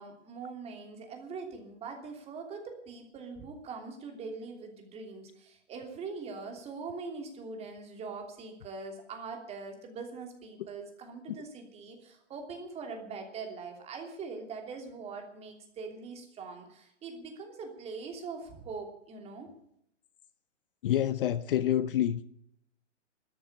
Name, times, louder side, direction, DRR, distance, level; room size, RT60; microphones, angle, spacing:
voice 1, 0.0-19.5, right 4 dB, 15° right, 3.0 m, -42 dB
voice 2, 20.8-22.3, left 11 dB, 45° left, 0.8 m, -27 dB
13.5 x 11.0 x 9.8 m
hypercardioid pair, 145°, 36 cm